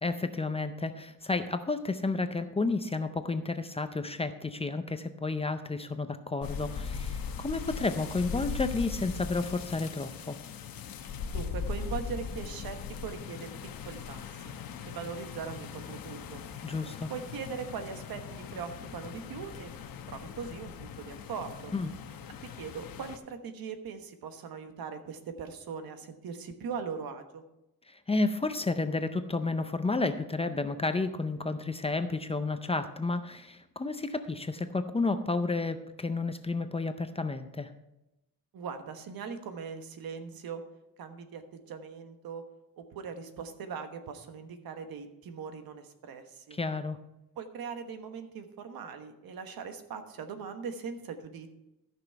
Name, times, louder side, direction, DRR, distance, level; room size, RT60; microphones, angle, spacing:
voice 1, 0.0-10.4 16.6-17.1 21.7-21.9 27.9-37.7 46.5-47.0, left 3 dB, 15° left, 9 dB, 0.5 m, -31 dB
sound 1, 6.4-23.2, left 6 dB, 75° left, 0.9 m, -40 dB
voice 2, 11.3-13.5 13.9-14.5 14.8-16.4 17.1-19.7 20.1-21.7 22.6-27.4 38.5-40.6 41.0-42.4 42.8-46.6 47.4-51.5, right 6 dB, 80° right, 7 dB, 1.2 m, -40 dB
14.0 x 6.1 x 4.6 m, 0.92 s
wide cardioid pair, 160°, 35 cm